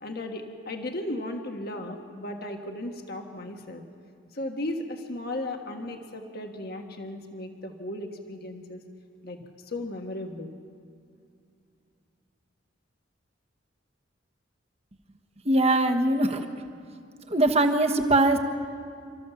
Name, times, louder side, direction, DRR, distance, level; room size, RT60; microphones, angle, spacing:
voice 1, 0.0-3.8 4.3-8.8 9.2-10.5, left 1 dB, 50° left, 3 dB, 1.4 m, -36 dB
voice 2, 15.4-16.5 17.3-18.4, right 2 dB, 30° right, 6 dB, 1.2 m, -21 dB
29.0 x 13.5 x 7.1 m, 2.4 s
head